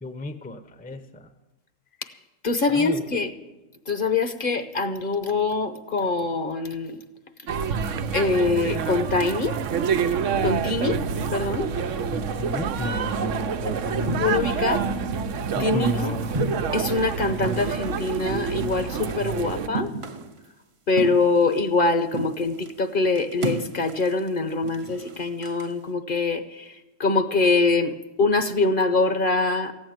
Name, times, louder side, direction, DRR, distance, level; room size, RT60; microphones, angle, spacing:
voice 1, 0.0-1.3 2.7-3.1 12.1-14.5 15.5-16.4, left 2 dB, 10° left, 10 dB, 0.6 m, -33 dB
voice 2, 2.4-3.3 3.9-7.0 8.1-9.6 10.4-11.0 11.3-11.7 14.2-14.8 15.6-15.9 16.7-19.9 20.9-26.7 27.0-29.7, left 3 dB, 50° left, 9 dB, 1.0 m, -24 dB
sound 1, 7.5-19.7, right 6 dB, 85° right, 1.1 m, -27 dB
sound 2, 13.2-13.6 14.1-14.7 15.2-15.9 16.3-17.0 17.4-19.4 19.7-20.5 20.9-21.9 22.1-22.7 23.2-25.7, right 2 dB, 35° right, 0.6 m, -34 dB
15.0 x 8.7 x 9.2 m, 1.1 s
omnidirectional pair, 1.2 m